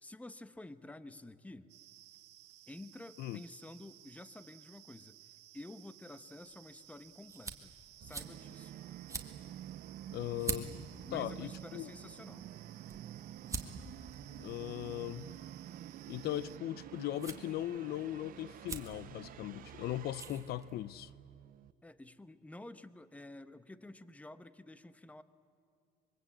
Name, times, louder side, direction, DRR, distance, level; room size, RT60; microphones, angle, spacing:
voice 1, 0.0-1.7 2.7-7.7 8.0-8.8 11.0-12.5 21.8-25.2, left 2 dB, 10° left, 13 dB, 0.9 m, -51 dB
sound 1, 1.7-16.6, right 14 dB, 85° right, 1.5 m, -59 dB
sound 2, 6.4-21.1, right 3 dB, 20° right, 1.8 m, -48 dB
Musical instrument, 8.0-21.7, right 12 dB, 55° right, 0.5 m, -49 dB
voice 2, 10.1-10.7 11.1-11.9 14.4-15.3 16.1-21.1, left 14 dB, 70° left, 18 dB, 0.5 m, -39 dB
25.0 x 23.0 x 8.5 m, 2.5 s
cardioid pair, 110°, 17 cm